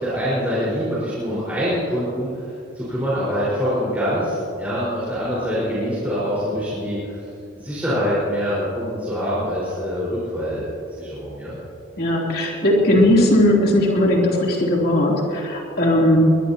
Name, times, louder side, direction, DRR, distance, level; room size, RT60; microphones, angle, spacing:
voice 1, 0.0-2.4 2.7-7.2 7.5-11.6, equal, 10° right, -10 dB, 4.8 m, -24 dB
voice 2, 12.0-16.4, left 1 dB, 50° left, -3 dB, 3.3 m, -17 dB
22.5 x 20.5 x 2.9 m, 2.6 s
head